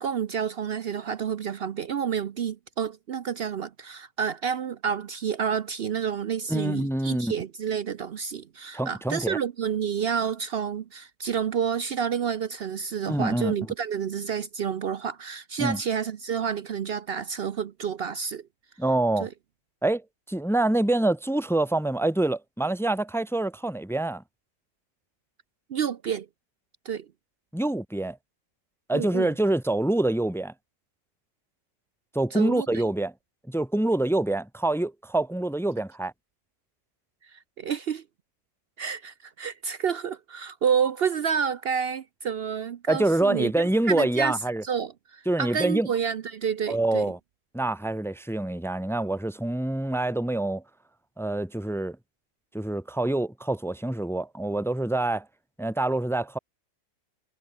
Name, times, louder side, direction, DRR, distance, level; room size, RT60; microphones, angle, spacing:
voice 1, 0.0-18.5 19.2-19.3 25.7-26.3 26.8-27.1 28.9-29.3 32.3-32.8 37.2-38.0 38.8-43.5 43.9-44.4 44.6-47.1, right 7 dB, 75° right, 0.5 m, -29 dB
voice 2, 6.5-7.3 8.7-9.4 13.0-13.5 15.6-15.8 18.8-19.3 19.8-20.0 20.3-24.2 27.5-28.2 28.9-30.5 32.1-33.1 33.5-36.1 42.9-44.6 45.2-45.9 46.7-47.2 47.5-50.6 51.2-52.0 52.5-55.2 55.6-56.4, right 2 dB, ahead, 1.4 m, -26 dB
omnidirectional pair, 1.9 m